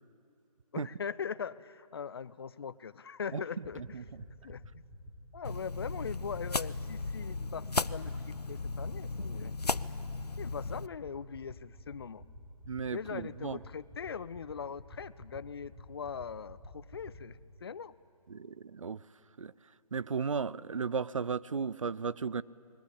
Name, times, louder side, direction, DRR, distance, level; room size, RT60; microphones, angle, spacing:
voice 1, 0.7-3.8 4.4-4.8 5.3-9.6 10.4-12.2 12.8-17.9, left 6 dB, 40° left, 19 dB, 0.6 m, -41 dB
sound 1, 3.6-17.1, left 1 dB, 5° right, 4.9 m, -48 dB
sound 2, 5.4-10.9, left 3 dB, 90° left, 0.6 m, -36 dB
voice 2, 12.7-13.6 18.3-19.0 19.4-19.5 19.9-22.4, right 5 dB, 55° right, 19 dB, 0.6 m, -35 dB
29.0 x 21.0 x 8.5 m, 2.6 s
figure-of-eight pair, 145°, 20 cm